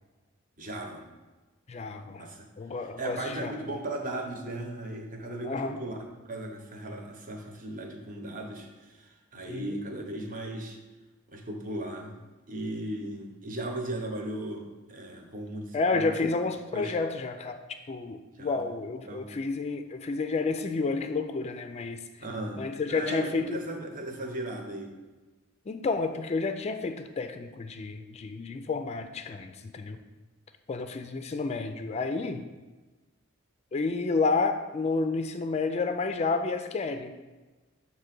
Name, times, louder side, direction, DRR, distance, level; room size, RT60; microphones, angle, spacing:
voice 1, 0.6-1.0 2.0-2.5 2.8-6.0 6.2-10.8 11.3-12.1 12.5-16.1 16.7-16.9 18.3-18.6 19.0-19.3 22.2-24.9, right 1 dB, 40° right, 2 dB, 1.0 m, -37 dB
voice 2, 1.7-2.3 2.6-3.5 5.4-5.8 9.5-9.8 15.7-17.6 17.9-22.0 22.6-23.6 25.7-30.0 30.7-32.4 33.7-37.1, left 3 dB, 30° left, 7 dB, 0.4 m, -30 dB
7.6 x 2.9 x 5.9 m, 1.2 s
head